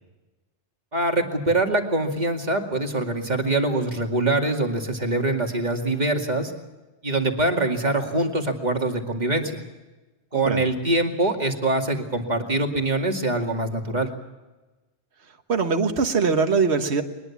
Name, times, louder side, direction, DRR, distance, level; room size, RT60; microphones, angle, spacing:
voice 1, 0.9-6.5 7.0-9.6 10.3-14.1, right 2 dB, 40° right, 3 dB, 2.5 m, -24 dB
voice 2, 10.3-10.7 15.5-17.0, right 5 dB, 70° right, 6 dB, 1.7 m, -22 dB
22.0 x 21.0 x 7.2 m, 1.1 s
omnidirectional pair, 1.1 m